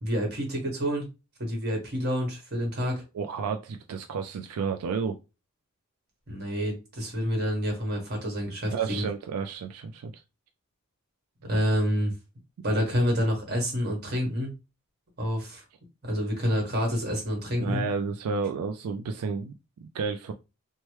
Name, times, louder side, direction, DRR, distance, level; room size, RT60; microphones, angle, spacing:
voice 1, 0.0-1.1 1.4-3.0 6.3-9.1 11.4-12.1 12.6-14.5 15.2-15.6 16.0-17.8, equal, 50° right, 1.4 m, -28 dB
voice 2, 3.1-5.2 8.7-10.1 17.6-20.3, right 5 dB, 90° right, 0.4 m, -31 dB
3.0 x 2.1 x 3.1 m
head